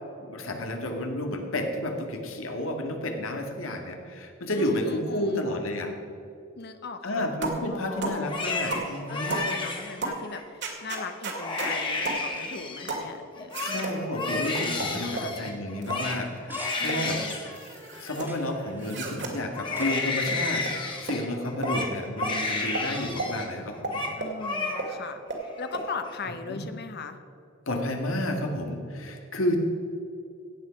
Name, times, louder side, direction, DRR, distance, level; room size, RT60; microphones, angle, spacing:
voice 1, 0.2-5.9 7.0-9.4 13.6-17.2 18.0-24.0 26.5-26.6 27.7-29.6, left 1 dB, 85° left, 3 dB, 1.9 m, -31 dB
voice 2, 4.5-5.4 6.6-7.3 7.7-13.8 15.0-15.4 16.8-17.4 24.2-25.2 25.6-27.2, left 4 dB, 55° left, 8 dB, 0.9 m, -39 dB
sound 1, 7.4-7.6 8.0-8.2 8.7-8.9 9.3-9.5 10.0-10.2 10.6-11.7 12.0-12.2 12.9-13.1 13.5-13.9 14.5-15.3 15.8-16.0 16.5-17.0 17.3-18.3 18.8-19.3 19.8-19.9 20.2-20.3 20.6-20.7 21.1-21.2 21.6-21.8 22.2-22.3 22.7-22.9 23.2-23.3 23.8-24.4 24.8-24.9 25.3-25.4 25.7-25.9, right 3 dB, 60° right, 2.3 m, -33 dB
Crying sobbing, 8.1-10.4 10.9-11.1 11.3-13.0 13.4-19.1 19.5-23.5 23.7-24.1 24.4-25.1 25.5-26.1, left 3 dB, 25° left, 1.8 m, -32 dB
sound 2, 16.2-21.7, right 1 dB, 10° right, 1.8 m, -50 dB
16.0 x 8.7 x 5.2 m, 2.7 s
head